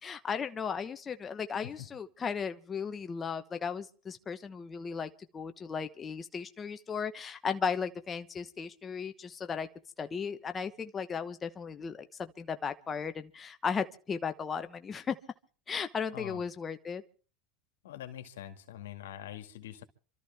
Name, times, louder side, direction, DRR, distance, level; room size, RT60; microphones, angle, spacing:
voice 1, 0.0-9.7 10.0-12.1 12.4-15.2 15.7-17.0, left 6 dB, 25° left, 1.0 m, -36 dB
voice 2, 17.8-19.8, left 11 dB, 85° left, 2.1 m, -44 dB
27.0 x 13.5 x 3.5 m
supercardioid pair, 105°, 0 cm